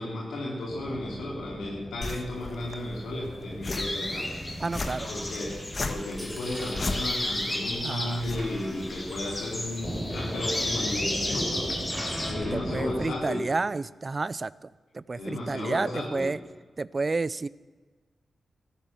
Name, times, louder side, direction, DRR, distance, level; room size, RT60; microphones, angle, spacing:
voice 1, 0.0-4.4 5.0-11.7 12.3-13.5 15.2-16.3, left 1 dB, 90° left, -3 dB, 3.0 m, -34 dB
sound 1, 0.7-13.1, right 1 dB, ahead, 3.5 m, -39 dB
sound 2, 2.0-10.0, left 2 dB, 45° left, 1.4 m, -38 dB
sound 3, 3.7-12.3, left 1 dB, 25° left, 3.9 m, -34 dB
voice 2, 4.6-5.1 7.8-8.2 12.5-14.7 14.9-16.4 16.8-17.5, right 3 dB, 40° right, 20 dB, 0.4 m, -30 dB
13.5 x 12.5 x 7.1 m, 1.3 s
cardioid pair, 50°, 0 cm